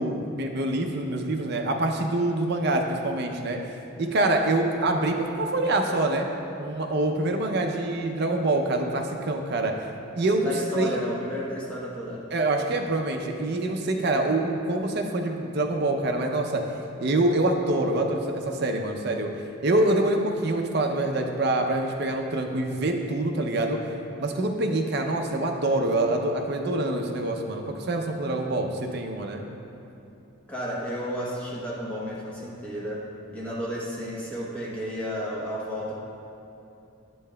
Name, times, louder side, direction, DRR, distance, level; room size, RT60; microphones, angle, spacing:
voice 1, 0.0-3.6 4.0-6.3 6.6-9.9 10.2-11.0 12.3-16.6 17.0-23.9 24.2-29.4, right 2 dB, 50° right, 3 dB, 0.5 m, -25 dB
voice 2, 10.4-12.3 30.5-36.0, equal, 5° left, -6 dB, 0.8 m, -32 dB
9.4 x 5.5 x 2.2 m, 2.8 s
head